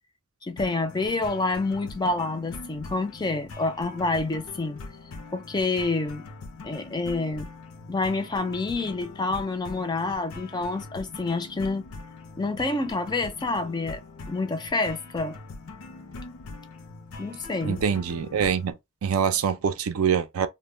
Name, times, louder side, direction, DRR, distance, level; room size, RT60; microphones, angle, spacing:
voice 1, 0.4-4.8 5.3-6.3 6.6-7.5 7.9-11.9 12.4-14.0 14.3-15.4 17.2-17.8, left 3 dB, 20° left, 0.4 m, -28 dB
sound 1, 0.6-18.7, left 3 dB, 85° left, 0.5 m, -42 dB
voice 2, 17.6-20.5, right 7 dB, 90° right, 0.4 m, -25 dB
2.1 x 2.1 x 3.1 m
head